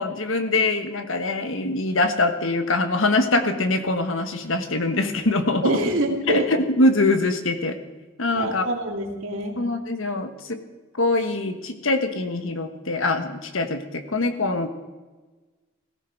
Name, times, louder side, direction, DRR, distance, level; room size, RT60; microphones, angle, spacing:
voice 1, 0.0-5.8 6.3-7.8 8.2-8.6 9.6-10.6 10.9-14.7, left 2 dB, 75° left, 8 dB, 1.4 m, -23 dB
voice 2, 5.6-6.5 8.3-9.6, right 1 dB, 75° right, 1 dB, 2.4 m, -25 dB
17.0 x 14.5 x 4.6 m, 1.2 s
head